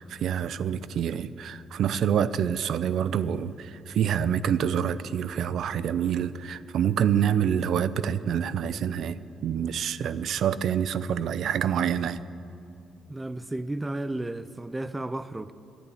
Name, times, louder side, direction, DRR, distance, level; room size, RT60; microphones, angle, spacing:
voice 1, 0.0-12.2, right 8 dB, 70° right, 0.4 m, -27 dB
voice 2, 13.1-15.5, right 1 dB, 15° right, 0.5 m, -33 dB
11.0 x 9.8 x 8.6 m
cardioid pair, 90°, 0 cm